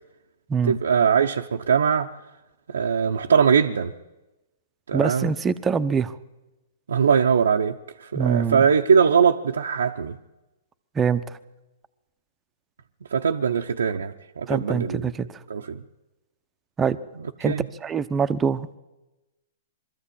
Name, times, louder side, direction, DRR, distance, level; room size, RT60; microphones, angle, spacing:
voice 1, 0.6-2.1 2.7-3.9 4.9-5.3 6.9-10.2 13.1-15.1 15.5-15.8 17.4-17.7, right 6 dB, 85° right, 0.8 m, -21 dB
voice 2, 4.9-6.1 8.1-8.7 10.9-11.2 14.5-15.3 16.8-17.0 17.4-17.6 17.8-18.8, right 6 dB, 15° right, 0.9 m, -24 dB
22.0 x 13.5 x 8.7 m
hypercardioid pair, 130°, 0 cm